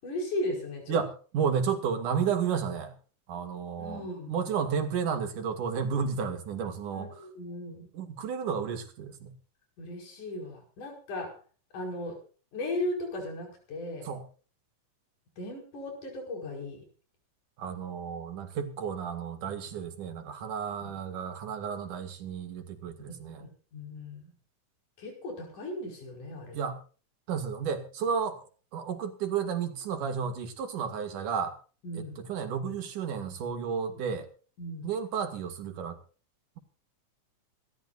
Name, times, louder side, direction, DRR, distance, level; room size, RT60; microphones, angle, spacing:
voice 1, 0.0-1.0 3.8-4.3 6.9-7.9 9.8-11.4 11.7-12.2 12.5-14.1 15.4-16.8 20.8-20.9 23.4-24.3 25.0-26.6 31.8-32.2 34.6-34.9, left 1 dB, 80° left, 2 dB, 6.6 m, -36 dB
voice 2, 0.9-2.9 3.3-4.0 4.3-7.1 7.9-9.3 14.0-14.3 17.6-23.5 26.5-26.8 27.3-28.4 28.7-31.6 31.9-34.3 34.8-36.0, right 6 dB, 80° right, 7 dB, 3.5 m, -32 dB
27.0 x 13.0 x 2.5 m, 0.36 s
omnidirectional pair, 3.5 m